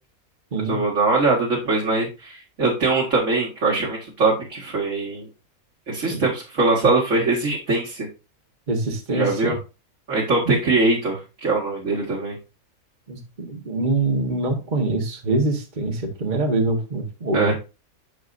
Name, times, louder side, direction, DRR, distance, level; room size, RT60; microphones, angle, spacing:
voice 1, 0.7-5.3 5.9-8.1 9.1-9.6 10.1-12.4 17.3-17.5, right 3 dB, 60° right, -3 dB, 2.3 m, -22 dB
voice 2, 8.7-9.6 10.4-10.5 13.1-17.5, right 2 dB, 35° right, 2 dB, 1.5 m, -24 dB
11.0 x 6.8 x 2.6 m, 0.29 s
omnidirectional pair, 1.5 m